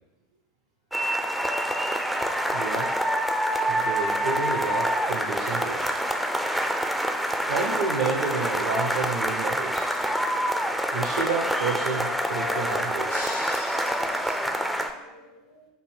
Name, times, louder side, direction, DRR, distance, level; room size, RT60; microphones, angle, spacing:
sound 1, 0.9-14.9, equal, ahead, 0.3 m, -26 dB
voice 1, 2.5-2.9 3.7-6.0 7.5-10.0 10.9-13.3, right 4 dB, 65° right, 1 dB, 0.4 m, -30 dB
voice 2, 13.1-15.7, left 1 dB, 75° left, 0 dB, 1.0 m, -43 dB
3.3 x 2.6 x 4.3 m, 1.0 s
figure-of-eight pair, 75°, 0 cm